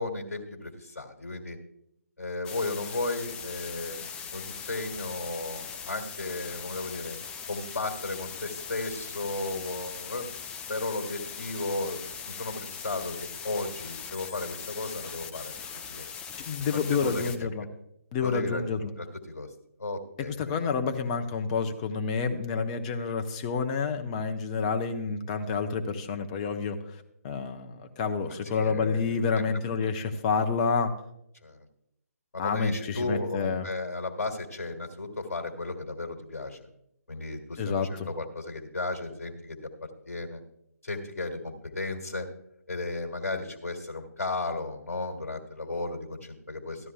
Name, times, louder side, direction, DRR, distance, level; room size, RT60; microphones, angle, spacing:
voice 1, 0.0-1.6 2.2-7.2 7.5-10.3 10.7-15.5 15.9-16.1 16.9-17.5 18.2-18.6 19.0-19.5 19.8-20.5 28.5-29.4 31.4-31.6 32.3-36.7 37.1-37.7 38.0-39.7 40.1-40.4 40.8-42.3 42.7-46.9, left 2 dB, 60° left, 3 dB, 1.8 m, -34 dB
sound 1, 2.4-17.4, left 6 dB, 10° left, 0.4 m, -40 dB
voice 2, 16.4-17.7 18.1-18.9 20.2-27.0 27.2-30.9 32.4-33.7 37.6-38.1, left 5 dB, 25° left, 6 dB, 0.8 m, -29 dB
14.5 x 12.5 x 2.3 m, 0.77 s
figure-of-eight pair, 140°, 9 cm